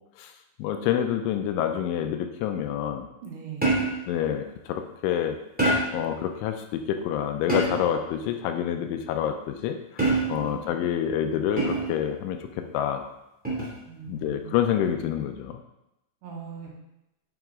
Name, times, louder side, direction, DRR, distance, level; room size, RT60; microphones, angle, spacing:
voice 1, 0.6-3.1 4.1-5.4 5.9-12.4 12.7-13.0 14.1-15.6, left 9 dB, 85° left, 6 dB, 3.1 m, -27 dB
voice 2, 3.2-3.7 10.3-10.6 13.9-14.6 16.2-16.7, right 8 dB, 75° right, -3 dB, 3.9 m, -40 dB
sound 1, 3.6-4.1 5.6-6.1 7.5-8.0 10.0-10.5 11.6-12.0 13.4-13.8, right 2 dB, 5° right, 1.1 m, -25 dB
9.2 x 6.5 x 3.7 m, 0.88 s
omnidirectional pair, 5.5 m